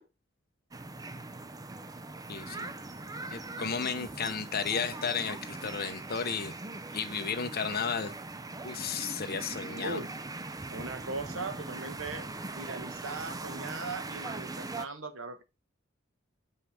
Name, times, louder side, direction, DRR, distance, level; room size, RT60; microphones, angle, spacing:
sound 1, 0.7-14.9, right 2 dB, 20° right, 0.6 m, -41 dB
voice 1, 2.3-2.7 3.3-6.5 6.9-8.1 8.6-10.0, left 6 dB, 50° left, 1.1 m, -33 dB
voice 2, 10.7-12.3 12.5-15.4, right 3 dB, 75° right, 1.2 m, -39 dB
6.3 x 5.6 x 4.9 m
head